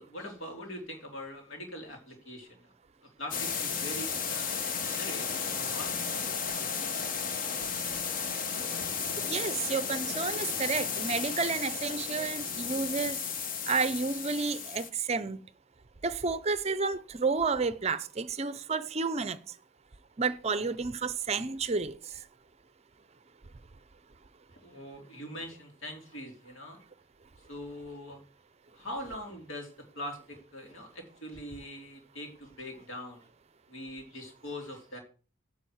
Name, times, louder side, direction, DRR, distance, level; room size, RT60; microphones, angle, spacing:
voice 1, 0.0-2.7 3.2-6.3 24.6-26.8 27.5-28.2 28.7-29.7 29.9-33.3 33.7-35.0, left 1 dB, 75° left, 3.4 m, -42 dB
sound 1, 3.3-14.9, left 6 dB, 40° left, 0.9 m, -34 dB
voice 2, 9.2-13.2 13.7-15.4 16.0-19.5 20.2-22.2, right 4 dB, 30° right, 0.5 m, -31 dB
10.0 x 4.7 x 7.8 m
head